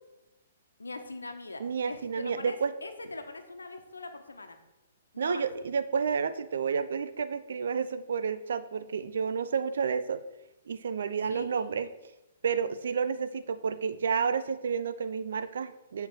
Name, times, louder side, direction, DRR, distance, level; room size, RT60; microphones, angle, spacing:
voice 1, 0.8-4.6 5.1-5.5 11.2-11.7, left 2 dB, 85° left, 6 dB, 1.2 m, -42 dB
voice 2, 1.6-2.7 5.2-10.2 10.7-11.9 12.4-16.1, right 6 dB, 65° right, 12 dB, 0.6 m, -30 dB
9.2 x 4.6 x 6.2 m, 0.98 s
figure-of-eight pair, 120°, 0 cm